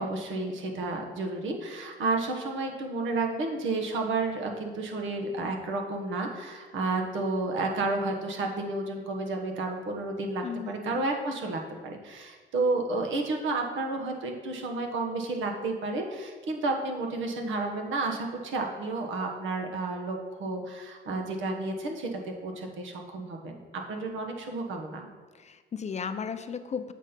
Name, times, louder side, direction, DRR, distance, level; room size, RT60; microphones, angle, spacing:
voice 1, 0.0-23.6 23.9-25.1, right 2 dB, 75° right, 2 dB, 1.2 m, -31 dB
voice 2, 10.4-11.0 25.4-26.9, left 6 dB, 35° left, 10 dB, 0.5 m, -35 dB
7.5 x 4.4 x 5.2 m, 1.4 s
cardioid pair, 90°, 20 cm